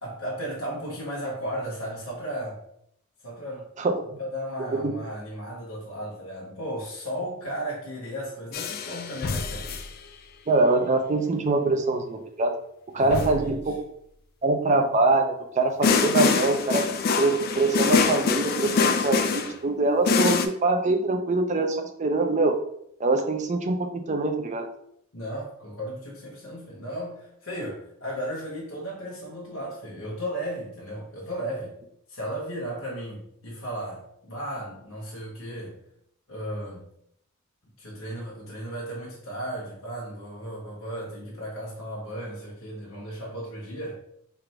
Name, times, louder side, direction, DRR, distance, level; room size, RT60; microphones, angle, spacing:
voice 1, 0.0-2.6 3.2-3.7 4.2-9.7 13.0-13.7 25.1-31.8 32.1-35.8 36.3-36.9 37.8-43.9, equal, 65° left, -5 dB, 1.1 m, -35 dB
sound 1, 8.5-9.9 13.1-13.6 15.8-19.6 20.0-20.5, left 5 dB, 45° left, 0.3 m, -24 dB
voice 2, 10.5-12.5 12.9-13.6 14.4-16.8 17.2-22.6 23.0-24.7, right 2 dB, 35° right, 5 dB, 0.4 m, -24 dB
3.4 x 2.5 x 4.4 m, 0.72 s
head